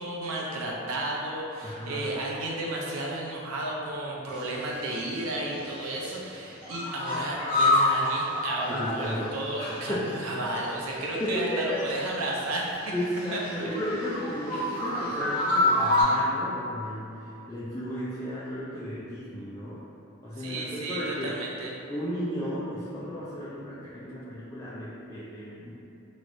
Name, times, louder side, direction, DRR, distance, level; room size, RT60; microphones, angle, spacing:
voice 1, 0.0-10.0 10.2-12.8 13.3-13.4 14.5-14.6 20.4-21.8, right 2 dB, 90° right, -3 dB, 0.6 m, -33 dB
voice 2, 1.6-2.1 8.6-10.2 11.2-11.9 12.9-19.8 20.2-21.4 21.9-25.7, equal, 15° left, -11 dB, 0.3 m, -34 dB
sound 1, 4.3-4.8 5.1-6.1 6.5-9.8 10.0-10.2 10.4-12.4 12.7-16.0, left 2 dB, 10° right, 1.0 m, -28 dB
3.1 x 3.0 x 2.6 m, 2.7 s
head